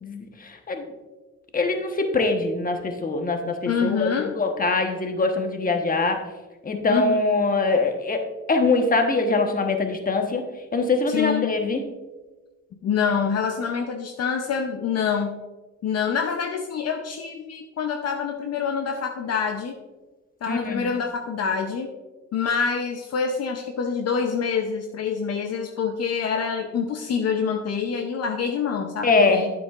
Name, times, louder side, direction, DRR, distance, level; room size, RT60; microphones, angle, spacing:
voice 1, 0.0-0.8 1.5-6.3 6.6-8.2 8.5-10.4 10.7-11.8 20.5-20.9 29.0-29.5, left 3 dB, 30° left, 5 dB, 1.1 m, -23 dB
voice 2, 3.7-4.3 6.9-7.2 11.1-11.5 12.8-15.4 15.8-19.8 20.4-21.9 22.3-29.5, left 6 dB, 55° left, 5 dB, 0.7 m, -26 dB
9.3 x 7.9 x 2.4 m, 1.2 s
cardioid pair, 90°, 30 cm